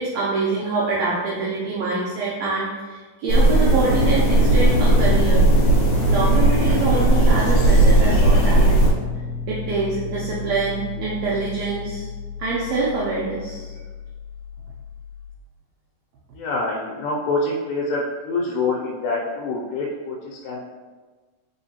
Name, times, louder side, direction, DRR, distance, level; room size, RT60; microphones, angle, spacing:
voice 1, 0.0-5.4 6.1-8.8 9.5-12.1 12.4-13.7, right 3 dB, 85° right, -5 dB, 1.5 m, -25 dB
sound 1, 3.3-8.9, right 2 dB, 65° left, 1.4 m, -16 dB
sound 2, 3.8-15.4, left 2 dB, 65° right, 1.3 m, -30 dB
voice 2, 16.3-20.6, left 3 dB, 85° left, -2 dB, 2.3 m, -26 dB
4.3 x 3.9 x 2.8 m, 1.3 s
omnidirectional pair, 3.9 m